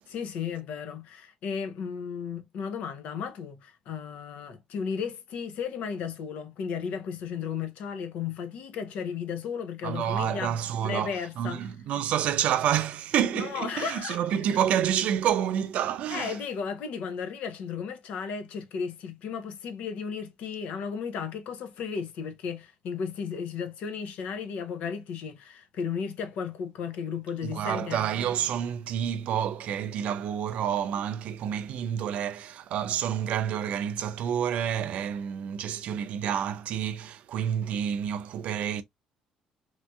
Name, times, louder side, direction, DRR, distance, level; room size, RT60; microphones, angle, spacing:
voice 1, 0.1-10.6 10.8-11.6 13.3-14.4 16.1-28.0, left 6 dB, 70° left, 0.7 m, -34 dB
voice 2, 9.8-16.4 27.4-38.8, right 9 dB, 70° right, 0.4 m, -29 dB
3.1 x 2.7 x 2.3 m
cardioid pair, 85°, 2 cm